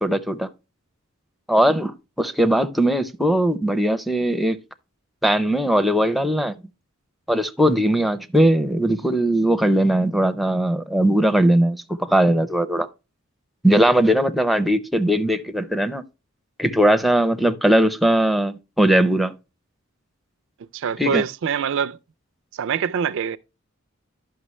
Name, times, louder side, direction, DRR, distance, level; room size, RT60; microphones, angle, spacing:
voice 1, 0.0-0.5 1.5-4.6 5.2-6.5 7.3-12.9 13.6-16.0 16.6-19.3 21.0-21.2, right 1 dB, ahead, 0.5 m, -19 dB
voice 2, 20.7-22.0 22.6-23.4, right 7 dB, 65° right, 0.4 m, -24 dB
11.0 x 5.8 x 3.0 m
head